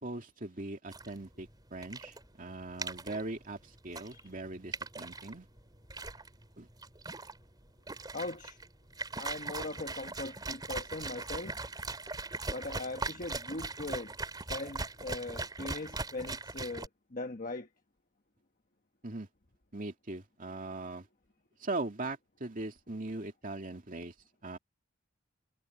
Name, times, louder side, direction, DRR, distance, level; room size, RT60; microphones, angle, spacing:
voice 1, 0.0-5.5 6.6-6.7 19.0-19.3 19.7-21.1 21.6-24.1 24.4-24.6, right 2 dB, 40° right, 2.5 m, -40 dB
sound 1, 0.9-16.9, right 3 dB, 20° right, 3.3 m, -40 dB
voice 2, 8.1-8.6 9.2-11.6 12.5-14.1 14.5-17.7, left 2 dB, 40° left, 1.2 m, -40 dB
head